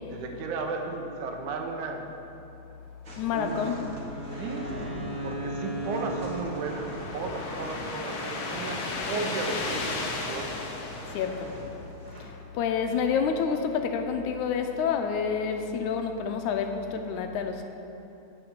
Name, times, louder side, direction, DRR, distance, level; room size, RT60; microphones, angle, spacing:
voice 1, 0.1-2.1 3.3-3.7 4.4-10.5, right 4 dB, 85° right, 3 dB, 2.4 m, -35 dB
sound 1, 3.0-10.5 10.8-11.6 12.0-12.2, equal, 30° right, 2.0 m, -43 dB
voice 2, 3.2-3.8 11.0-11.5 12.1-17.6, left 6 dB, 80° left, 5 dB, 2.1 m, -28 dB
Wind instrument woodwind instrument, 3.2-7.4, right 1 dB, 15° left, 2.1 m, -37 dB
sound 2, 5.6-12.0, left 3 dB, 60° left, 1.4 m, -35 dB
9.9 x 5.9 x 8.0 m, 2.9 s
omnidirectional pair, 3.4 m